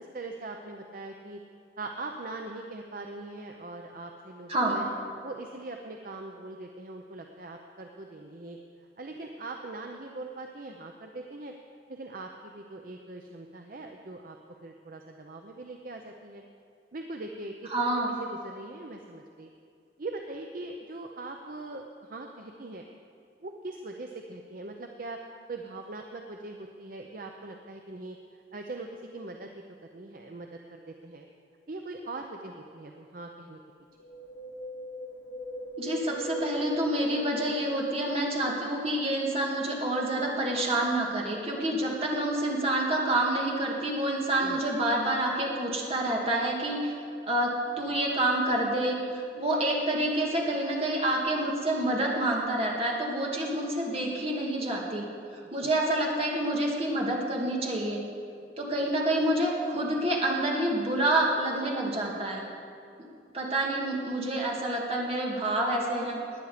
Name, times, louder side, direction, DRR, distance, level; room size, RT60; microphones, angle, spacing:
voice 1, 0.0-1.4 1.8-4.8 5.2-8.6 9.0-11.5 11.9-14.4 14.6-16.4 16.9-17.7 18.2-19.5 20.0-22.8 23.4-25.2 25.5-28.2 28.5-29.6 29.9-31.3 31.7-33.6 44.4-44.6 55.6-55.7, right 2 dB, 50° right, 3 dB, 0.7 m, -41 dB
voice 2, 4.5-4.9 17.7-18.2 35.8-47.0 47.2-55.1 55.3-58.0 58.6-62.4 63.0-63.1 63.3-66.2, right 1 dB, 35° right, -2 dB, 2.2 m, -28 dB
Wind, 34.0-38.3 38.6-38.7, right 1 dB, 90° left, 1.2 m, -39 dB
18.5 x 9.9 x 5.0 m, 2.4 s
head